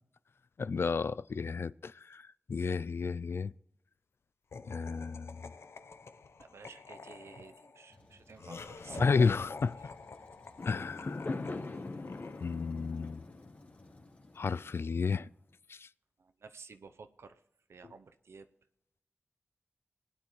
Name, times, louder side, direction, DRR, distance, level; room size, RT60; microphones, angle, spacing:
voice 1, 0.6-2.2 2.5-3.5 4.7-5.4 9.0-9.7 10.6-11.4 12.4-13.2 14.4-15.3 15.7-15.9, left 5 dB, 65° left, 0.4 m, -32 dB
Laughter, 4.5-12.9, left 4 dB, 85° left, 0.8 m, -49 dB
voice 2, 6.4-9.1 9.8-9.9 16.2-17.4 17.7-18.5, right 4 dB, 90° right, 0.7 m, -51 dB
Truck, 7.9-14.9, left 1 dB, 25° left, 2.4 m, -62 dB
Fireworks, 10.6-15.0, left 3 dB, 50° left, 1.2 m, -41 dB
20.5 x 9.8 x 3.2 m
wide cardioid pair, 90°, 4 cm